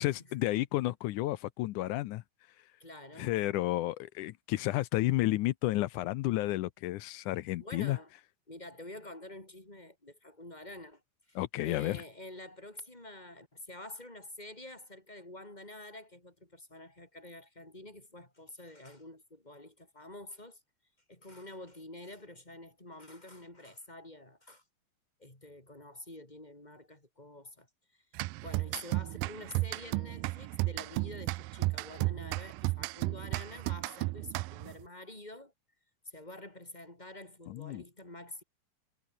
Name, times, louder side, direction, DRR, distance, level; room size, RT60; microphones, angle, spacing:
voice 1, 0.0-2.2 3.2-8.0 11.4-12.0 37.5-37.8, left 16 dB, 75° left, 2.0 m, -31 dB
voice 2, 2.8-3.4 7.6-8.1 8.5-11.0 11.3-11.4 11.6-20.6 21.1-24.6 25.2-27.7 28.4-35.5 36.0-38.4, left 1 dB, 10° left, 4.7 m, -48 dB
sound 1, 28.1-34.8, right 22 dB, 85° right, 2.3 m, -34 dB
omnidirectional pair, 4.0 m